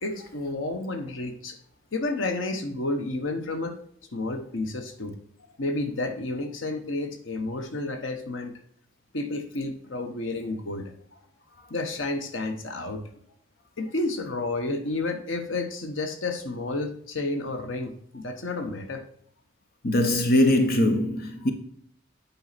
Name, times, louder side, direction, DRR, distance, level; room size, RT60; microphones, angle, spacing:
voice 1, 0.0-1.6 1.9-3.8 4.1-5.2 5.6-8.6 9.1-10.9 11.7-13.0 13.8-19.0, left 2 dB, 80° left, 1.2 m, -31 dB
voice 2, 19.8-21.5, left 1 dB, 50° left, 1.1 m, -21 dB
9.1 x 5.5 x 4.1 m
head